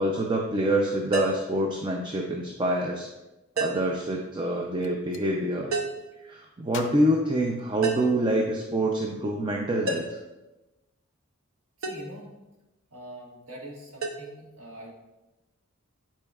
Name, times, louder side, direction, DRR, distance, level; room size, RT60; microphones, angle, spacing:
voice 1, 0.0-3.1 3.6-5.7 6.2-10.2, right 1 dB, 20° right, 1 dB, 0.5 m, -26 dB
sound 1, 1.1-1.5 3.6-4.0 5.7-6.1 7.8-8.2 9.9-10.3 11.8-12.1 14.0-14.2, right 3 dB, 65° right, 0.8 m, -30 dB
Gunshot gunfire, 4.8-5.3 6.7-8.2, left 6 dB, 60° left, 0.5 m, -44 dB
voice 2, 11.8-12.3 12.9-14.9, right 1 dB, 85° right, -3 dB, 1.7 m, -43 dB
10.0 x 4.3 x 2.4 m, 1.0 s
head